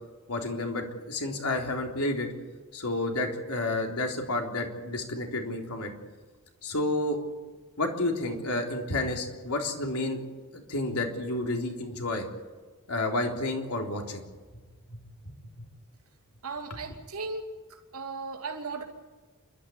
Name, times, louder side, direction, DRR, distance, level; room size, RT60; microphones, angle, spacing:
voice 1, 0.3-2.3 2.7-5.9 6.6-7.2 7.8-10.2 10.5-12.3 12.9-14.2 14.9-15.0, left 2 dB, 85° left, 2 dB, 3.7 m, -30 dB
voice 2, 16.4-17.4 17.7-18.8, right 4 dB, 80° right, 1 dB, 3.0 m, -36 dB
29.0 x 12.5 x 9.7 m, 1.4 s
head